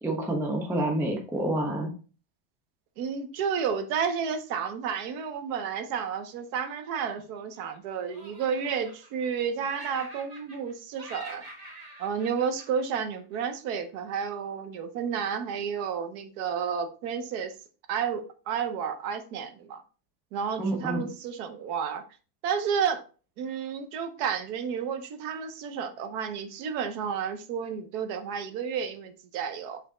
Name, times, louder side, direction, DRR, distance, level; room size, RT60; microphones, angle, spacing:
voice 1, 0.0-1.9 20.6-21.1, right 1 dB, ahead, 1 dB, 0.7 m, -28 dB
voice 2, 3.0-11.4 12.0-17.5 17.9-19.8 20.3-22.0 22.4-23.0 23.4-29.8, right 7 dB, 65° right, 8 dB, 1.1 m, -31 dB
Laughter, 6.5-7.8 8.1-9.4 9.7-10.7 11.0-13.6, right 1 dB, 25° right, 1.1 m, -47 dB
6.4 x 5.1 x 2.9 m, 0.37 s
omnidirectional pair, 2.2 m